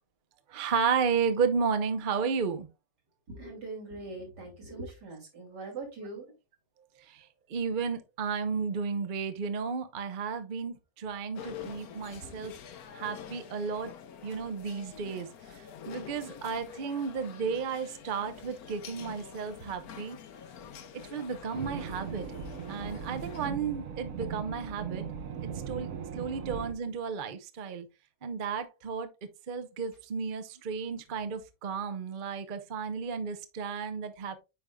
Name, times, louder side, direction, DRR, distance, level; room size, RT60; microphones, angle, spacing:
voice 1, 0.5-2.7 7.1-12.5 12.9-13.9 14.2-20.2 21.1-22.3 22.7-25.0 25.7-27.9 28.2-29.1 29.5-34.4, right 5 dB, 45° right, 0.7 m, -33 dB
voice 2, 3.3-6.3 12.2-12.5, right 2 dB, 90° right, 3.3 m, -42 dB
sound 1, 11.3-23.5, left 8 dB, 70° left, 1.2 m, -47 dB
sound 2, 21.5-26.7, right 7 dB, 65° right, 1.0 m, -38 dB
9.0 x 5.2 x 2.2 m
omnidirectional pair, 1.7 m